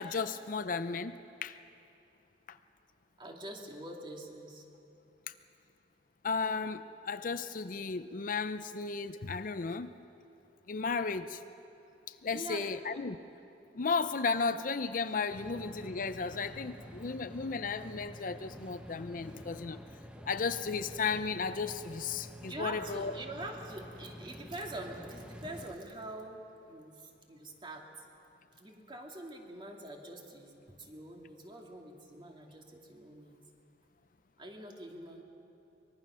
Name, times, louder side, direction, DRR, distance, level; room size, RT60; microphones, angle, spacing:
voice 1, 0.0-1.6 2.5-2.6 5.3-5.4 6.2-10.0 10.7-11.4 12.2-13.2 13.7-19.8 20.3-23.1, left 4 dB, 50° left, 11 dB, 0.6 m, -34 dB
voice 2, 3.2-4.6 12.3-13.0 22.5-27.9 28.5-33.4 34.4-35.2, right 1 dB, 30° right, 1 dB, 2.4 m, -45 dB
sound 1, 15.3-25.8, equal, 5° right, 1.0 m, -49 dB
24.0 x 22.0 x 6.3 m, 2.9 s
head